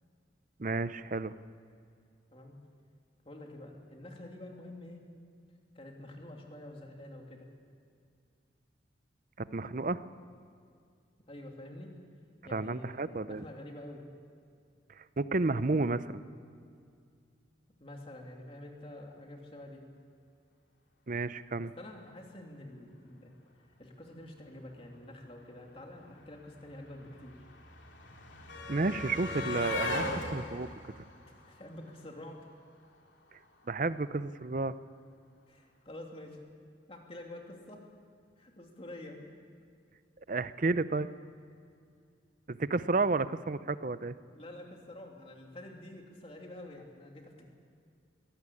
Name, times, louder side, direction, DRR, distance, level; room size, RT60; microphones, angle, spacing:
voice 1, 0.6-1.3 9.4-10.0 12.5-13.4 15.0-16.2 21.1-21.7 28.7-30.0 30.3-30.7 33.7-34.8 40.3-41.1 42.5-44.2, right 3 dB, 45° right, 14 dB, 0.6 m, -31 dB
voice 2, 3.2-5.0 5.7-7.5 11.3-11.9 12.4-14.1 17.8-19.8 21.8-23.3 23.8-27.4 29.9-30.2 31.3-32.4 35.5-36.4 36.9-37.8 38.4-39.3 44.3-47.5, left 1 dB, 30° left, 1 dB, 2.9 m, -48 dB
sound 1, 25.7-25.8 25.9-32.1 33.3-33.4 33.7-33.9, left 2 dB, 75° left, 2.9 m, -39 dB
22.0 x 17.5 x 8.6 m, 2.3 s
head